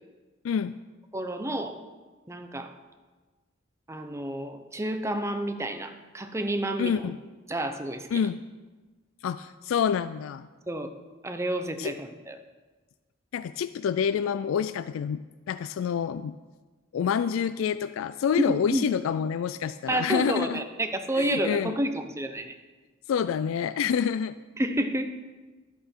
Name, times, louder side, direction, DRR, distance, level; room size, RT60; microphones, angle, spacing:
voice 1, 1.1-1.8 2.3-2.7 3.9-7.1 7.5-8.1 10.7-10.9 11.2-12.4 18.4-18.9 19.9-22.5 24.6-25.1, right 1 dB, 15° right, 7 dB, 0.8 m, -30 dB
voice 2, 6.8-7.2 8.1-8.4 9.2-10.5 11.8-11.9 13.3-15.2 15.5-16.3 16.9-20.6 21.2-21.7 23.1-24.3, left 7 dB, 85° left, 14 dB, 0.3 m, -27 dB
12.0 x 8.3 x 4.5 m, 1.3 s
head